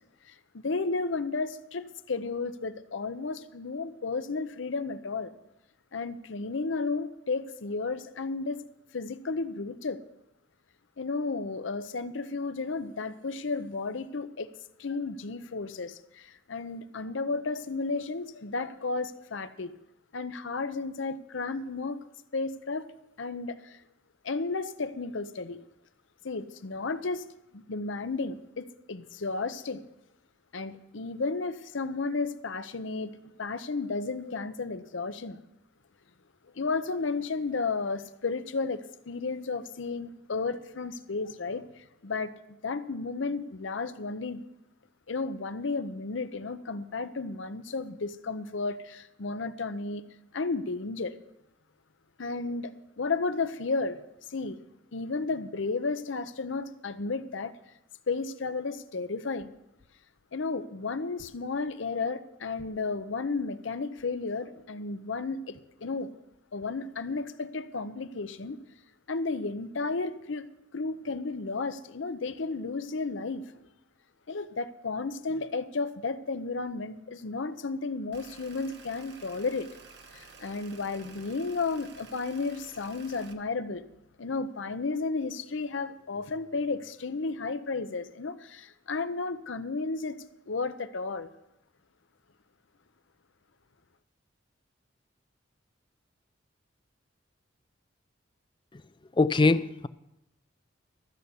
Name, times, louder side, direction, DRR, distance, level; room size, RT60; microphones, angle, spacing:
voice 1, 0.3-5.3 5.9-8.6 8.9-10.0 11.0-14.5 14.8-19.7 20.1-22.0 22.3-22.9 23.2-23.8 24.2-25.6 26.2-27.2 27.5-29.8 30.5-33.1 33.4-35.4 36.5-44.4 45.1-50.0 50.3-51.1 52.2-54.0 54.3-54.6 54.9-57.5 58.1-59.5 60.3-66.1 66.5-68.6 69.1-70.4 70.7-73.7 74.3-79.7 80.1-83.8 84.2-91.3, left 3 dB, 70° left, 0.7 m, -33 dB
sound 1, 78.1-83.3, right 5 dB, 60° right, 1.2 m, -52 dB
voice 2, 99.2-99.9, left 3 dB, 25° left, 0.4 m, -22 dB
13.5 x 6.8 x 8.0 m
head